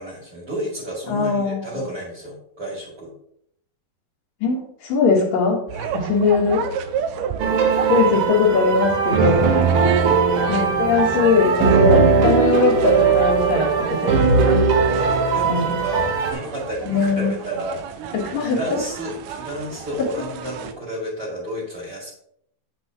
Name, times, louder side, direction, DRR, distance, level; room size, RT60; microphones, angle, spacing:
voice 1, 0.0-3.1 5.7-5.9 10.0-10.3 15.1-22.1, right 1 dB, 40° right, -8 dB, 3.5 m, -32 dB
voice 2, 1.1-1.8 4.4-5.7 5.9-6.7 7.9-9.5 10.5-14.7 15.4-15.7 16.9-17.3 18.1-18.8, left 4 dB, 80° left, -6 dB, 3.3 m, -20 dB
sound 1, 5.7-20.7, right 8 dB, 80° right, 2.2 m, -32 dB
sound 2, 7.4-16.3, right 5 dB, 60° right, 1.5 m, -19 dB
9.1 x 7.9 x 3.0 m, 0.69 s
omnidirectional pair, 3.8 m